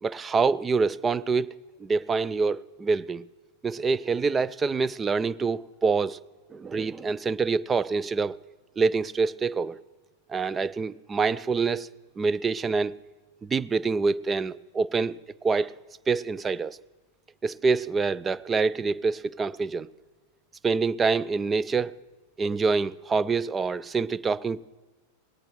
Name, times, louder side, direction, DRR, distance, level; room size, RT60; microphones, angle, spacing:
voice 1, 0.0-1.5 1.8-3.2 3.6-6.2 6.5-8.4 8.8-9.8 10.3-11.9 12.2-13.0 13.4-15.2 15.4-15.7 16.1-16.8 17.4-19.9 20.6-22.0 22.4-24.8, right 4 dB, 15° right, 0.4 m, -26 dB
19.5 x 18.0 x 3.1 m
figure-of-eight pair, 90°, 0 cm